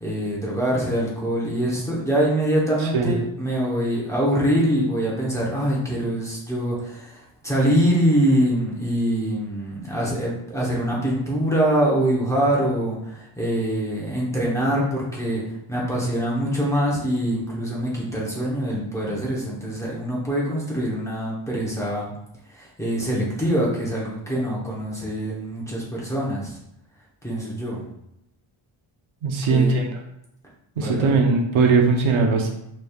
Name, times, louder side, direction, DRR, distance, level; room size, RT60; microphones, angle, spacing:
voice 1, 0.0-15.4 15.7-22.1 22.5-26.5 27.2-27.8 29.5-29.8 30.8-31.2, equal, 5° left, -6 dB, 0.9 m, -24 dB
voice 2, 2.8-3.1 29.2-30.0 30.8-32.5, right 4 dB, 70° right, 2 dB, 0.8 m, -20 dB
5.1 x 3.2 x 2.3 m, 0.80 s
cardioid pair, 150°, 50 cm